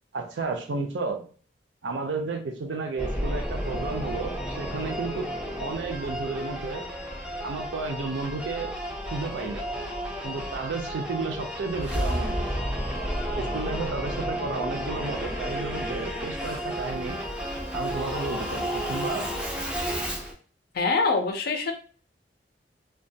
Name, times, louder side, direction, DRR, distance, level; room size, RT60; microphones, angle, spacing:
voice 1, 0.1-1.2 1.8-5.3 5.6-6.9 7.4-8.8 9.1-9.7 10.2-12.7 13.4-17.3 17.7-19.3, right 3 dB, 80° right, 4 dB, 0.5 m, -32 dB
Singing / Musical instrument, 3.0-20.3, equal, 5° right, 0.4 m, -32 dB
voice 2, 20.7-21.7, left 4 dB, 55° left, 5 dB, 0.4 m, -24 dB
2.2 x 2.2 x 2.7 m, 0.41 s
head